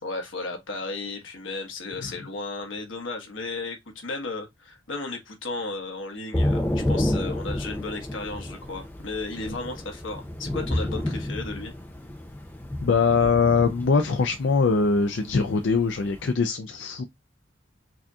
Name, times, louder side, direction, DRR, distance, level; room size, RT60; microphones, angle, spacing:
voice 1, 0.0-11.7, left 3 dB, 85° left, 1.3 m, -34 dB
Thunder / Rain, 6.3-16.3, left 1 dB, 10° left, 0.5 m, -30 dB
voice 2, 12.8-17.0, left 4 dB, 70° left, 0.4 m, -22 dB
4.8 x 2.7 x 2.4 m
head